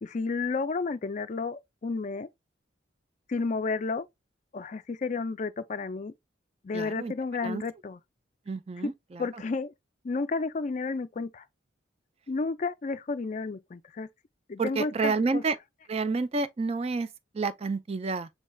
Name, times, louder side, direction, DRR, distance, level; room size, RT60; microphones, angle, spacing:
voice 1, 0.0-2.3 3.3-4.1 4.5-6.1 6.6-8.0 8.8-8.9 9.2-9.7 10.0-11.4 12.3-14.1 14.5-15.4, left 4 dB, 40° left, 0.4 m, -31 dB
voice 2, 6.7-7.1 7.4-7.6 8.5-9.4 14.6-15.6 15.9-18.3, right 4 dB, 30° right, 0.3 m, -30 dB
6.2 x 3.2 x 2.2 m
head